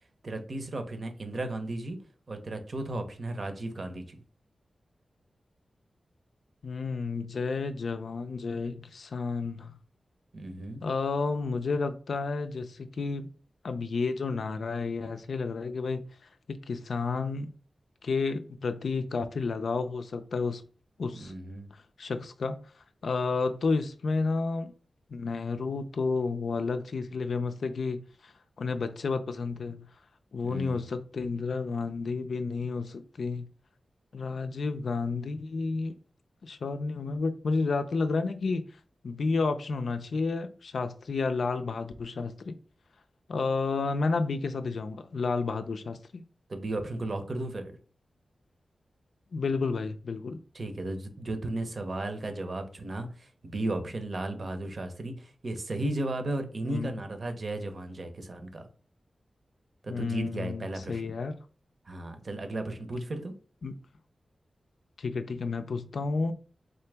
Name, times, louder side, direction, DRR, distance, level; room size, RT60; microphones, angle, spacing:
voice 1, 0.2-2.0 2.3-4.2 10.3-10.8 21.2-21.7 30.4-30.8 46.5-47.7 50.5-58.6 59.8-61.1 61.9-63.3, right 2 dB, 50° right, 0.7 m, -35 dB
voice 2, 6.6-9.8 10.8-13.3 13.6-16.0 16.5-17.5 18.0-20.6 21.0-21.3 22.0-22.6 23.0-24.7 25.1-28.3 28.6-29.9 30.3-33.5 34.1-36.0 36.4-38.6 39.0-42.5 43.3-46.2 49.3-50.4 56.6-57.0 59.9-61.4 63.6-63.7 65.0-66.3, left 4 dB, 75° left, 0.4 m, -31 dB
3.7 x 2.9 x 3.3 m
wide cardioid pair, 90°, 0 cm